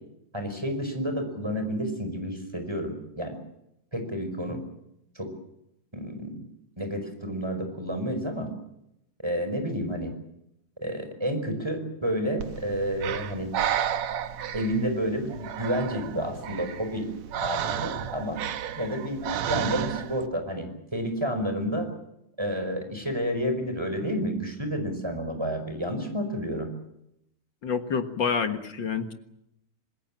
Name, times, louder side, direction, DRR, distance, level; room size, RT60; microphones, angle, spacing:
voice 1, 0.3-3.4 3.9-4.6 5.1-5.3 5.9-6.4 6.8-8.5 9.2-10.1 10.8-13.5 14.5-17.1 17.4-18.4 18.8-19.2 19.5-21.9 22.4-26.7, equal, 10° right, 6 dB, 5.1 m, -30 dB
Breathing, 12.4-20.3, right 9 dB, 70° right, 2.3 m, -32 dB
voice 2, 27.6-29.1, left 6 dB, 45° left, 7 dB, 1.9 m, -28 dB
26.5 x 20.5 x 7.4 m, 0.81 s
omnidirectional pair, 3.3 m